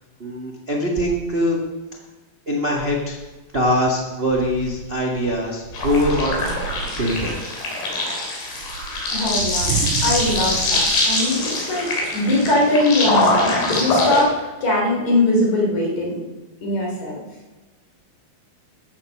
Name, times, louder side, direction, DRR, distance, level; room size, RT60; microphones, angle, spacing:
voice 1, 0.2-1.6 2.5-3.2 3.5-6.4 7.0-7.3, equal, 55° right, -1 dB, 0.6 m, -22 dB
sound 1, 3.3-3.4 3.8-7.5 8.4-12.1, right 7 dB, 85° right, 2.8 m, -31 dB
sound 2, 5.7-14.2, left 2 dB, 85° left, 5.3 m, -23 dB
voice 2, 9.1-9.7 10.0-16.2 16.6-17.2, left 1 dB, 50° left, -2 dB, 4.8 m, -21 dB
14.5 x 8.1 x 6.5 m, 1.2 s
omnidirectional pair, 4.5 m